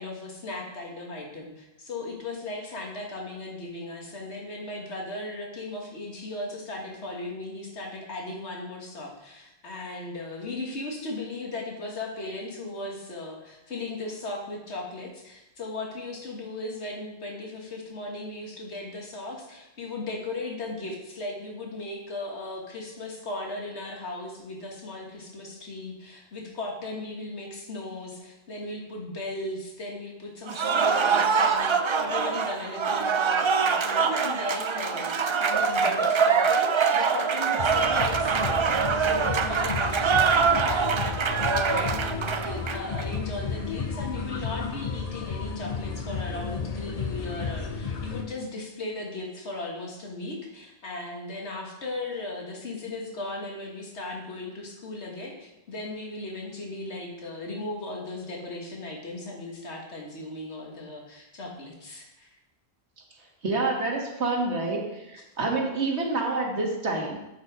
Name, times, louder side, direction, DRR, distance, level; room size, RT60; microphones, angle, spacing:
voice 1, 0.0-38.6 39.0-62.3, left 2 dB, 85° left, 0 dB, 1.9 m, -37 dB
Cheering / Applause, 30.5-43.1, right 5 dB, 50° right, 0.3 m, -24 dB
sound 1, 37.6-48.2, left 5 dB, 40° left, 0.8 m, -33 dB
voice 2, 63.4-67.2, right 3 dB, 85° right, 0 dB, 1.9 m, -27 dB
8.3 x 6.8 x 4.8 m, 0.94 s
omnidirectional pair, 1.1 m